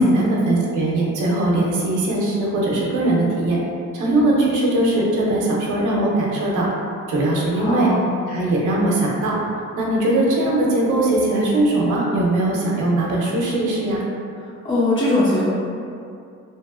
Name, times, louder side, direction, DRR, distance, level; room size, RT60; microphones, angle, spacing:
voice 1, 0.0-3.6 3.9-6.7 7.1-7.9 8.3-9.3 9.8-14.0, right 2 dB, 80° right, -3 dB, 0.7 m, -20 dB
voice 2, 7.6-8.1 14.6-15.5, left 1 dB, 40° left, -9 dB, 1.3 m, -19 dB
2.9 x 2.6 x 2.4 m, 2.5 s
cardioid pair, 90°, 30 cm